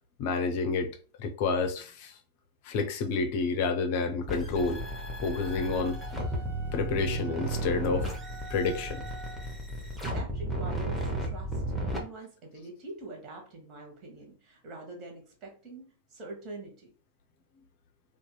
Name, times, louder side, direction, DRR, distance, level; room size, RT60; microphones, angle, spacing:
voice 1, 0.2-0.9 1.2-2.1 2.6-4.8 5.2-6.0 6.7-8.1 8.5-9.0, left 4 dB, 45° left, 0.5 m, -29 dB
sound 1, 4.3-12.0, right 1 dB, ahead, 0.8 m, -34 dB
sound 2, 5.3-9.6, right 5 dB, 65° right, 1.0 m, -48 dB
voice 2, 9.8-16.9, right 2 dB, 35° right, 1.1 m, -45 dB
2.7 x 2.4 x 2.2 m
figure-of-eight pair, 90°, 0 cm